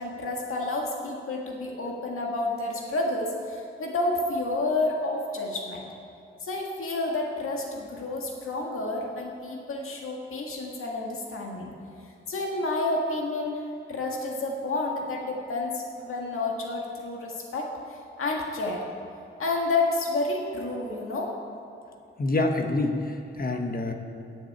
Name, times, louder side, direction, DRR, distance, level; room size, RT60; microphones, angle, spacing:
voice 1, 0.0-5.8 6.4-11.7 12.3-13.6 13.9-18.8 19.4-21.3, left 2 dB, 90° left, 0 dB, 1.8 m, -30 dB
voice 2, 22.2-23.9, left 2 dB, 45° left, 4 dB, 1.3 m, -27 dB
10.5 x 7.3 x 8.6 m, 2.7 s
wide cardioid pair, 100°, 21 cm